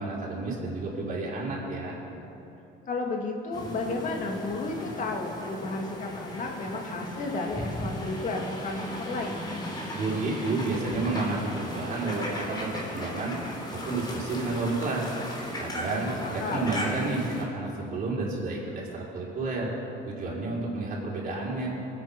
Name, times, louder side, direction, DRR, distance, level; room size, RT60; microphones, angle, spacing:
voice 1, 0.0-2.0 9.9-13.3 13.7-15.1 15.6-19.7 20.0-21.7, right 3 dB, 45° right, -4 dB, 4.9 m, -31 dB
voice 2, 2.9-9.4 15.9-16.8, left 3 dB, 40° left, 1 dB, 2.4 m, -33 dB
sound 1, 3.5-17.4, left 1 dB, 20° left, 3.5 m, -36 dB
25.0 x 9.0 x 6.0 m, 2.8 s
cardioid pair, 140°, 19 cm